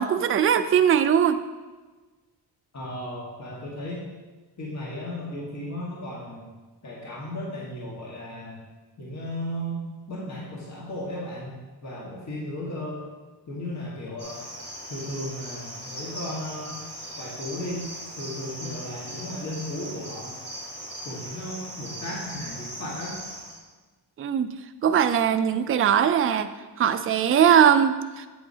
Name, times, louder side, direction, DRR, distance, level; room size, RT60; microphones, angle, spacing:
voice 1, 0.0-1.4 24.2-24.5 24.8-26.5 26.8-28.3, right 8 dB, 35° right, 9 dB, 0.4 m, -20 dB
voice 2, 2.7-4.0 4.6-6.5 6.8-8.6 9.0-13.0 13.5-14.4 14.9-16.8 17.2-17.9 18.2-20.3 21.0-23.2, left 1 dB, 40° left, -5 dB, 1.6 m, -35 dB
Cricket, 14.2-23.6, right 1 dB, 15° left, 1.9 m, -39 dB
8.3 x 8.2 x 2.8 m, 1.3 s
wide cardioid pair, 140°, 42 cm